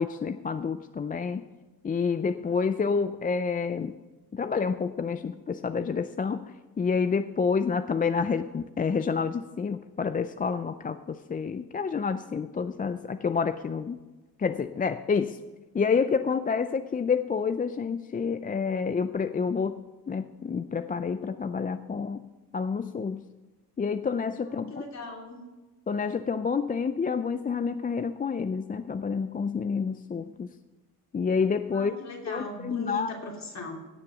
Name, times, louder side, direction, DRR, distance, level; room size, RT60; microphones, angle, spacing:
voice 1, 0.0-1.4 1.8-4.0 4.3-14.0 14.4-15.4 15.7-23.3 23.8-24.7 25.9-30.5 31.1-31.9 32.3-33.1, left 5 dB, 25° left, 11 dB, 0.4 m, -28 dB
voice 2, 24.4-25.4 31.7-33.8, left 2 dB, 45° left, 0 dB, 3.1 m, -39 dB
17.0 x 6.7 x 6.1 m, 1.2 s
cardioid pair, 85°, 37 cm